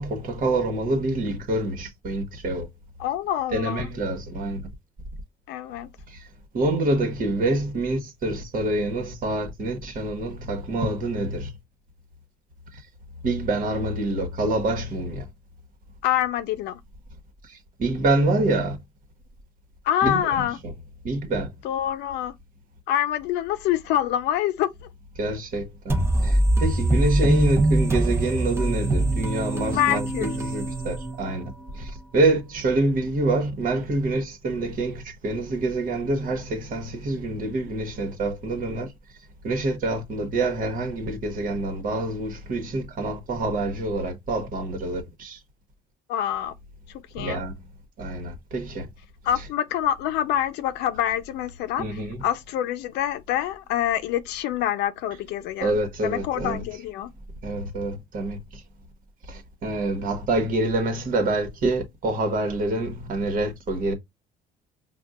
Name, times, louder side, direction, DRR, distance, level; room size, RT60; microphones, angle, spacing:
voice 1, 0.0-2.7 3.5-4.6 6.1-6.2 6.5-11.5 13.2-15.3 17.8-18.8 20.0-20.7 21.0-21.5 25.2-31.4 31.7-38.9 39.4-45.4 47.2-47.6 48.0-48.9 51.8-52.2 55.6-56.6 57.4-58.4 59.3-63.9, right 2 dB, 55° right, 1.3 m, -26 dB
voice 2, 3.0-3.9 5.5-5.9 16.0-16.8 19.8-20.6 21.6-22.3 22.9-24.7 29.7-30.3 46.1-46.5 47.1-47.4 49.2-57.1, left 11 dB, 85° left, 0.6 m, -26 dB
sound 1, 25.9-31.5, right 1 dB, 15° right, 0.8 m, -23 dB
5.2 x 2.4 x 2.4 m
cardioid pair, 110°, 17 cm